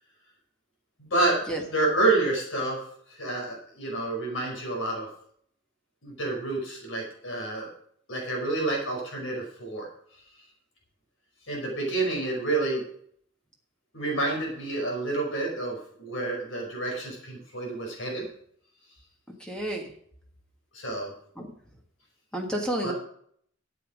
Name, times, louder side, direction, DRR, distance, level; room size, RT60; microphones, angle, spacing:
voice 1, 1.0-1.4 1.7-2.8 3.1-5.1 6.0-7.7 8.1-9.9 11.5-12.8 13.9-18.3 20.7-21.1 22.8-22.9, right 2 dB, 80° left, 0 dB, 5.2 m, -28 dB
voice 2, 19.4-19.9 21.4-21.5 22.3-22.9, right 1 dB, 5° left, 1 dB, 1.6 m, -30 dB
13.5 x 8.3 x 5.1 m, 0.64 s
head